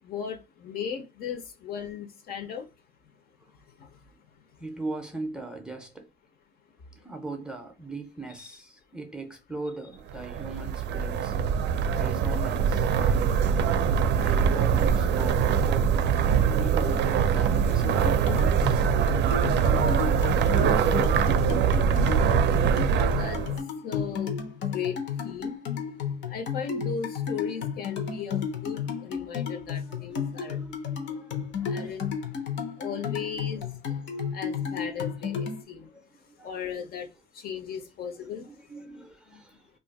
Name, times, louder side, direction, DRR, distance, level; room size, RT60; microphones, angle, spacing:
voice 1, 0.0-2.7 3.7-4.0 4.4-4.5 6.9-7.1 8.4-8.5 11.6-11.9 16.3-16.5 19.7-20.1 22.9-25.8 26.2-30.6 31.5-32.1 32.8-33.7 34.3-35.9 36.4-38.5, left 7 dB, 55° left, 0.6 m, -37 dB
voice 2, 4.6-6.1 7.0-11.3 11.9-13.6 14.2-16.0 16.5-18.8 29.3-31.9 32.9-33.5 34.1-34.2 36.3-36.5 38.2-39.7, right 3 dB, 5° right, 0.5 m, -40 dB
sound 1, 10.1-23.6, right 7 dB, 65° right, 0.4 m, -23 dB
sound 2, 17.8-35.6, left 7 dB, 80° left, 0.9 m, -33 dB
2.7 x 2.5 x 3.9 m
cardioid pair, 170°, 19 cm